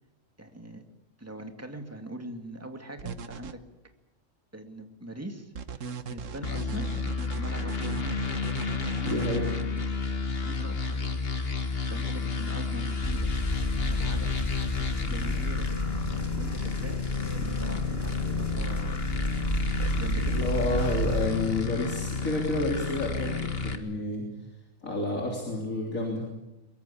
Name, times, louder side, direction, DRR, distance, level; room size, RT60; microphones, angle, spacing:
voice 1, 0.4-0.8 1.2-3.6 4.5-6.9 7.4-7.8 9.1-9.8 10.4-11.6 11.8-13.3 13.8-14.3 14.7-15.7 16.4-17.1 17.3-19.0 19.8-20.3, right 1 dB, 10° right, 5 dB, 2.3 m, -42 dB
sound 1, 3.0-3.5 5.5-9.5, right 6 dB, 70° right, 1.4 m, -38 dB
sound 2, 6.4-23.8, left 4 dB, 45° left, 2.1 m, -31 dB
voice 2, 9.0-9.5 20.2-24.2 24.8-26.2, left 2 dB, 85° left, 0 dB, 3.9 m, -30 dB
sound 3, 13.0-21.3, equal, 15° left, 2.8 m, -31 dB
23.0 x 23.0 x 8.5 m, 0.94 s
omnidirectional pair, 1.4 m